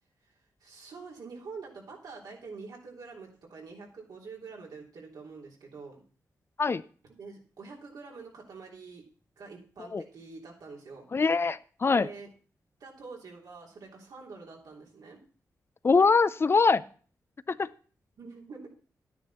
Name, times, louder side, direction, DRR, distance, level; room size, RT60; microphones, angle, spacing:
voice 1, 0.6-6.0 7.1-9.0 9.4-11.0 11.9-12.3 12.8-15.2 18.2-18.7, right 4 dB, 80° right, -1 dB, 3.3 m, -46 dB
voice 2, 11.1-12.1 15.8-16.8 17.5-17.7, left 4 dB, 40° left, 16 dB, 0.4 m, -23 dB
11.5 x 9.7 x 4.2 m, 0.41 s
cardioid pair, 90°, 7 cm